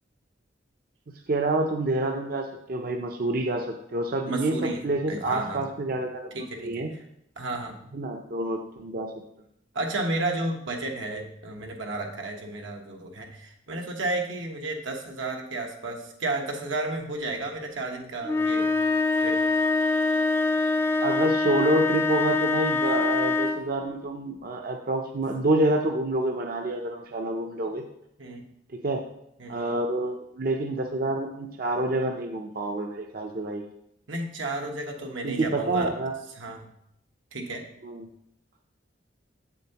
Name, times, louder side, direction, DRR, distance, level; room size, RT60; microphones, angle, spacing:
voice 1, 1.3-6.9 7.9-9.1 21.0-27.8 28.7-29.0 29.5-33.6 35.2-36.1 37.8-38.1, right 2 dB, 50° right, 3 dB, 0.5 m, -27 dB
voice 2, 4.2-4.8 5.1-5.6 6.3-6.7 7.4-7.8 9.7-18.7 19.2-19.4 28.2-28.4 29.4-29.7 34.1-35.9 36.4-36.7 37.3-37.6, right 2 dB, 85° right, 2 dB, 1.1 m, -32 dB
sound 1, 18.2-23.7, left 3 dB, 10° left, 0.4 m, -24 dB
7.7 x 7.1 x 2.9 m, 0.77 s
head